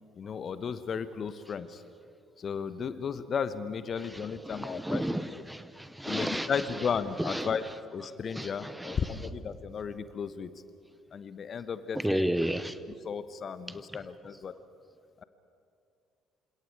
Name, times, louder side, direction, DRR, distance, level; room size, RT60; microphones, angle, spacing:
voice 1, 0.2-1.8 2.4-5.0 5.3-5.4 6.0-7.6 7.9-10.5 11.1-12.3 13.0-14.6 15.2-15.3, left 6 dB, 45° left, 1.2 m, -34 dB
voice 2, 4.5-6.5 7.2-7.5 8.3-9.0 12.0-12.8, equal, 5° right, 1.0 m, -32 dB
29.0 x 26.5 x 4.9 m
figure-of-eight pair, 50°, 0 cm